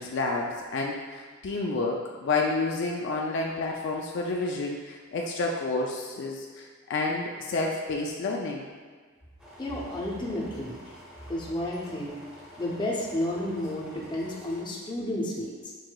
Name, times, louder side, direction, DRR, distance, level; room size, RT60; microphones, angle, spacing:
voice 1, 0.0-8.7, left 3 dB, 60° left, 0 dB, 0.4 m, -30 dB
sound 1, 9.4-14.6, equal, 5° right, 0.9 m, -48 dB
voice 2, 9.6-10.8 11.3-12.2 12.6-15.7, left 1 dB, 20° left, -4 dB, 0.7 m, -31 dB
6.3 x 3.7 x 2.3 m, 1.5 s
head